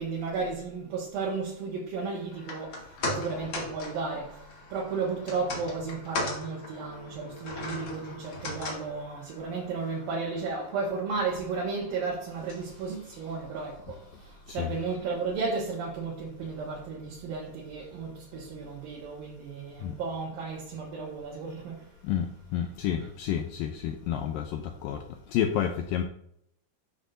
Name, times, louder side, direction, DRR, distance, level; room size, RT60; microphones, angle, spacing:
voice 1, 0.0-2.8 3.1-4.4 4.7-14.0 14.5-21.9, right 4 dB, 65° right, 3.0 m, -34 dB
sound 1, 2.3-14.7 15.0-15.1, left 2 dB, 50° left, 1.6 m, -39 dB
voice 2, 22.5-25.0 25.3-26.0, left 9 dB, 90° left, 2.0 m, -29 dB
12.0 x 6.3 x 2.6 m
omnidirectional pair, 4.7 m